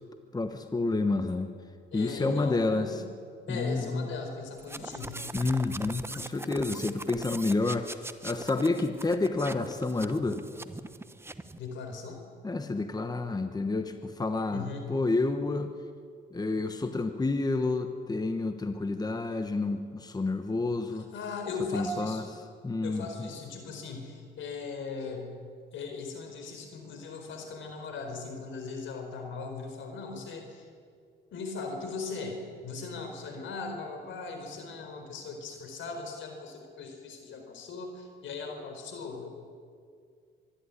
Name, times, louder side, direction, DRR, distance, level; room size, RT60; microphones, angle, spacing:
voice 1, 0.3-1.5 1.9-3.0 3.5-4.1 5.3-10.4 12.4-15.7 16.3-21.1 21.7-22.2 22.6-23.3, left 3 dB, 20° left, 8 dB, 1.2 m, -29 dB
voice 2, 1.9-3.1 3.5-5.2 11.6-12.2 14.5-14.9 20.9-22.2 22.8-25.3 25.7-30.7 31.3-39.3, left 4 dB, 75° left, 4 dB, 4.5 m, -39 dB
sound 1, 4.6-11.6, right 2 dB, 10° right, 1.0 m, -41 dB
25.0 x 11.5 x 9.9 m, 2.2 s
cardioid pair, 90°, 20 cm